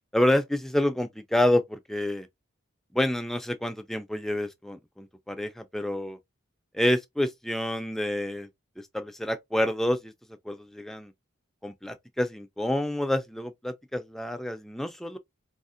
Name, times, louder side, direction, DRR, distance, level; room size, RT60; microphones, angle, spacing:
voice 1, 0.1-2.3 2.9-6.2 6.7-8.5 8.9-10.1 10.5-11.1 11.6-15.2, left 1 dB, ahead, 0.3 m, -28 dB
3.5 x 2.4 x 2.4 m
head